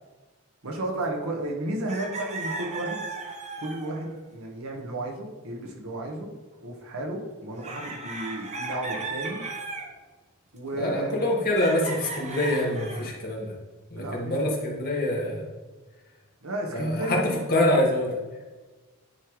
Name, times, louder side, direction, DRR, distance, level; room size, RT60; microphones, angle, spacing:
voice 1, 0.6-3.0 3.6-6.3 6.6-9.4 10.5-11.3 14.0-14.5 16.4-17.4, right 1 dB, 80° right, 0 dB, 1.4 m, -33 dB
sound 1, 1.5-1.6 1.9-4.1 7.5-9.9 11.6-13.1, right 3 dB, 30° right, 0.9 m, -36 dB
voice 2, 10.8-13.5 13.9-15.5 16.7-18.1, left 1 dB, 45° left, -2 dB, 1.7 m, -25 dB
9.8 x 3.4 x 4.7 m, 1.3 s
head